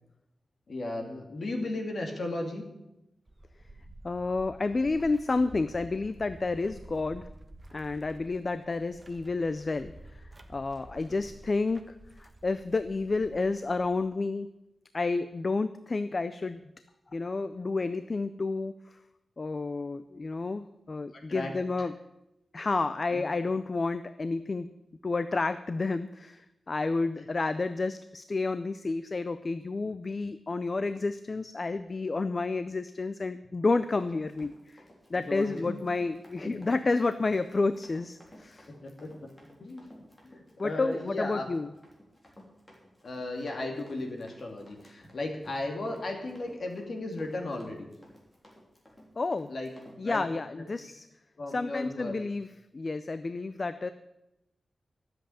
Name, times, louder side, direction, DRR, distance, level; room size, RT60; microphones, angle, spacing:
voice 1, 0.7-2.6 21.3-21.5 23.1-23.2 27.2-27.3 35.1-35.6 38.7-39.3 39.6-39.9 40.2-41.4 43.0-47.9 49.5-49.7 50.0-50.2 50.6-50.7 51.4-52.1, left 2 dB, 50° left, 1 dB, 2.7 m, -35 dB
sound 1, 3.3-14.1, right 1 dB, 20° right, 1.1 m, -51 dB
voice 2, 4.0-7.3 7.7-10.2 10.5-11.9 12.2-14.5 14.9-16.6 17.1-18.7 19.4-21.9 22.5-24.7 25.0-34.8 35.1-38.7 40.6-41.7 49.2-49.5 50.0-51.0 51.5-52.5 52.7-53.9, left 3 dB, 35° left, 12 dB, 0.5 m, -30 dB
Run, 33.9-50.0, left 1 dB, 20° left, 3.3 m, -53 dB
13.0 x 7.8 x 8.6 m, 0.90 s
wide cardioid pair, 150°, 0 cm